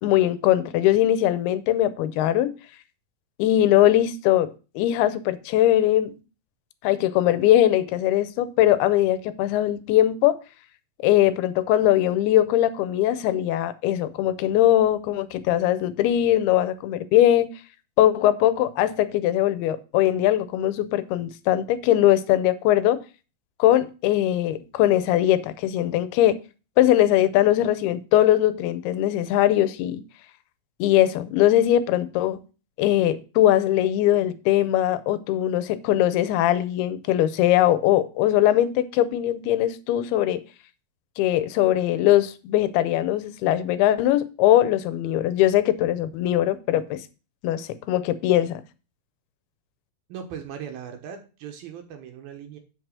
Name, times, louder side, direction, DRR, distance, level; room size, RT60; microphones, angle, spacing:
voice 1, 0.0-2.5 3.4-6.1 6.8-10.4 11.0-17.5 18.0-23.0 23.6-26.4 26.8-30.0 30.8-32.4 32.8-40.4 41.2-47.0 47.4-48.6, left 13 dB, 85° left, 2.7 m, -21 dB
voice 2, 50.1-52.6, right 8 dB, 75° right, 3.1 m, -38 dB
8.1 x 4.7 x 6.6 m
omnidirectional pair, 4.4 m